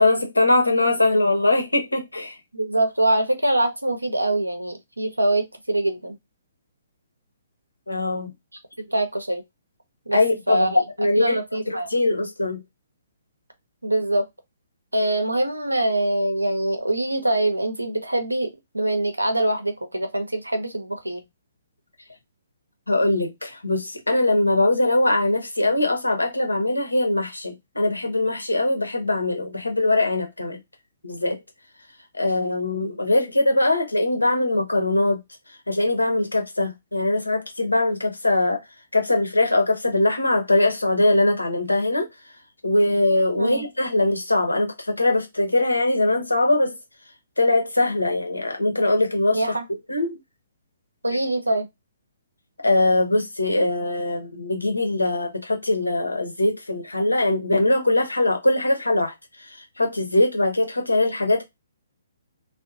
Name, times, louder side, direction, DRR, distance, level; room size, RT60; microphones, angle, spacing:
voice 1, 0.0-2.3 7.9-8.3 10.1-10.7 11.0-11.4 11.7-12.6 22.9-30.6 31.0-31.4 32.2-35.2 35.7-38.6 38.9-42.1 42.6-46.8 47.4-49.4 49.9-50.1 52.6-59.1 59.5-61.4, left 2 dB, 80° left, 0.8 m, -21 dB
voice 2, 2.5-6.2 8.8-9.4 10.1-10.2 10.5-10.8 11.2-11.9 13.8-14.3 14.9-21.2 43.4-43.6 49.3-49.6 51.0-51.7, right 1 dB, 85° right, 0.7 m, -24 dB
2.7 x 2.1 x 2.4 m
figure-of-eight pair, 125°, 0 cm